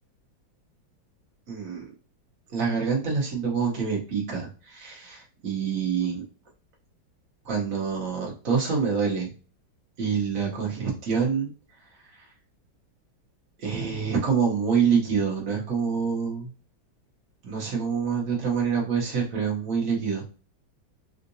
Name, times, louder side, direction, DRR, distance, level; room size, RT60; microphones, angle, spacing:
voice 1, 1.5-1.9 2.5-6.2 7.4-9.3 10.0-11.5 12.1-12.2 13.6-16.5 17.4-20.2, right 6 dB, 50° right, -2 dB, 1.2 m, -26 dB
3.7 x 2.5 x 2.6 m, 0.37 s
omnidirectional pair, 2.2 m